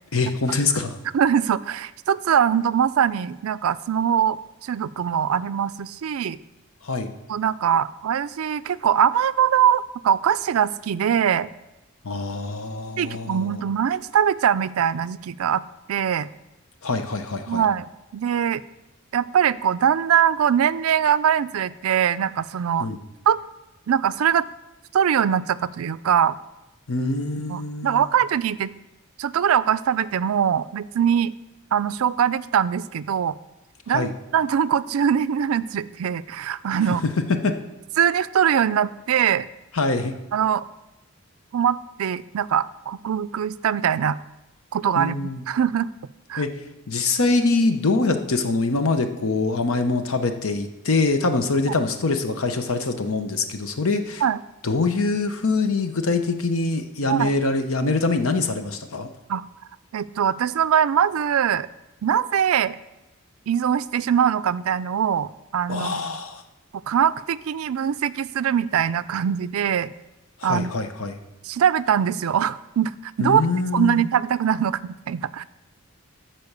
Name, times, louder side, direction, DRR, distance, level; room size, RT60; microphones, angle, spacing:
voice 1, 0.1-1.0 6.8-7.1 12.0-13.6 16.8-17.6 22.8-23.0 26.9-28.2 33.9-34.1 37.3-37.6 39.7-40.1 45.0-45.4 46.4-54.2 54.6-59.1 65.7-66.4 70.4-71.2 73.2-74.1, left 3 dB, 80° left, 7 dB, 0.9 m, -24 dB
voice 2, 1.1-6.4 7.3-11.5 13.0-15.6 15.9-16.3 17.5-17.9 18.1-18.6 19.1-22.9 23.3-23.4 23.9-24.5 24.9-26.4 27.5-28.7 29.2-31.3 31.7-33.3 33.9-37.0 38.0-39.5 40.3-40.7 41.5-44.2 44.7-45.9 46.3-46.4 54.2-54.4 57.1-57.3 59.3-59.4 59.9-61.7 62.0-62.8 63.5-66.0 66.7-69.9 70.4-70.7 71.5-73.4 73.7-75.4, right 8 dB, 85° right, 17 dB, 0.4 m, -22 dB
12.0 x 4.5 x 6.7 m, 0.98 s
head